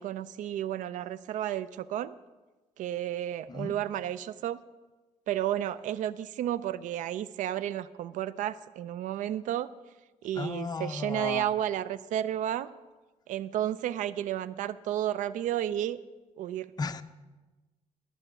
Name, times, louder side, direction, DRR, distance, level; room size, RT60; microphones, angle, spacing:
voice 1, 0.0-2.1 2.8-4.6 5.3-9.7 10.2-12.7 13.3-16.0 16.4-16.7, right 11 dB, 80° right, 17 dB, 0.4 m, -32 dB
voice 2, 10.4-11.5 16.8-17.0, left 4 dB, 30° left, 9 dB, 0.6 m, -34 dB
13.0 x 7.8 x 6.1 m, 1.2 s
cardioid pair, 100°, 13 cm